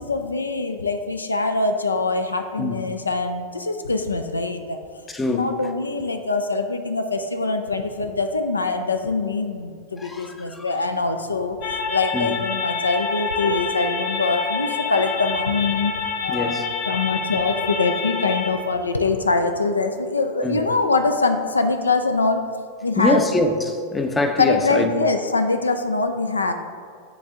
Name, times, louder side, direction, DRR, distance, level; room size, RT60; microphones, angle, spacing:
voice 1, 0.0-4.8 5.3-11.6 11.9-15.9 16.2-22.4 22.8-23.2 24.4-26.5, left 3 dB, 75° left, 7 dB, 0.3 m, -23 dB
voice 2, 5.1-5.6 10.0-10.7 12.1-12.3 16.3-16.7 20.4-20.6 23.0-24.9, left 2 dB, 15° left, 5 dB, 0.5 m, -24 dB
sound 1, 11.6-18.5, left 5 dB, 40° left, 0.9 m, -27 dB
9.1 x 3.3 x 3.6 m, 2.1 s
figure-of-eight pair, 90°, 0 cm